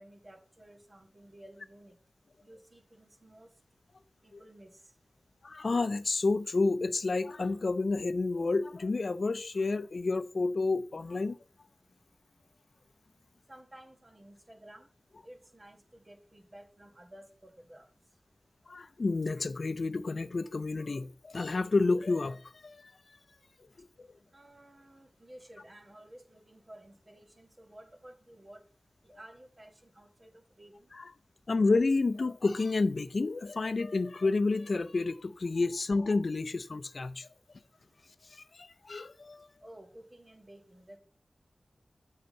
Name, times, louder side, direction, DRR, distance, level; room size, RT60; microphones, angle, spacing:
voice 1, 0.0-1.9 2.4-3.5 4.2-4.8 13.5-14.9 15.2-17.9 24.3-28.6 29.0-30.9 39.6-41.0, right 1 dB, 40° right, 1.9 m, -54 dB
voice 2, 5.4-11.4 18.7-22.9 23.8-23.9 31.0-31.1 31.5-37.3 38.3-39.5, left 3 dB, 65° left, 0.5 m, -30 dB
7.6 x 5.7 x 5.4 m
cardioid pair, 45°, 0 cm